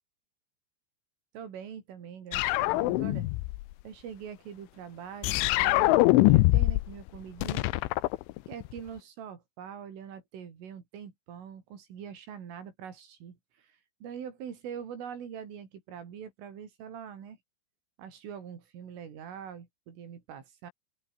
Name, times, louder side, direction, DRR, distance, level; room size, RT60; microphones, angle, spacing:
voice 1, 1.3-3.3 3.8-7.6 8.5-17.4 18.0-20.7, right 8 dB, 80° right, 6.5 m, -43 dB
sound 1, 2.3-3.6 5.2-6.9 7.2-8.8, left 20 dB, 80° left, 3.2 m, -23 dB
open air
omnidirectional pair, 5.7 m